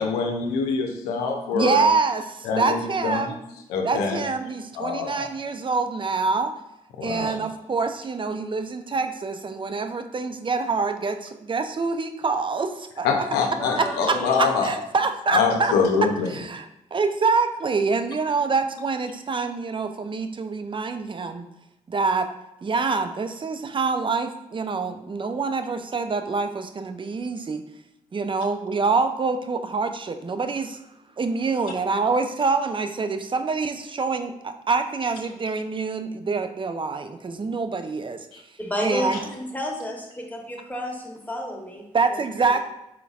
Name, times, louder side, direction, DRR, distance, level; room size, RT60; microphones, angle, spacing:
voice 1, 0.0-1.8 2.5-3.3 3.7-4.2 4.8-5.2 7.0-7.3 13.0-14.7 15.3-16.3, left 5 dB, 85° left, 2 dB, 0.6 m, -24 dB
voice 2, 1.5-3.4 3.8-6.5 7.0-13.1 13.8-15.7 16.3-21.5 21.9-22.3 22.6-27.6 28.1-30.8 31.2-38.3 38.8-39.2 41.9-42.6, right 4 dB, 30° right, 8 dB, 0.5 m, -26 dB
voice 3, 13.5-14.5 38.6-41.8 42.1-42.2 42.5-42.6, equal, 10° left, 0 dB, 1.2 m, -31 dB
4.4 x 3.9 x 2.4 m, 0.88 s
hypercardioid pair, 40°, 16 cm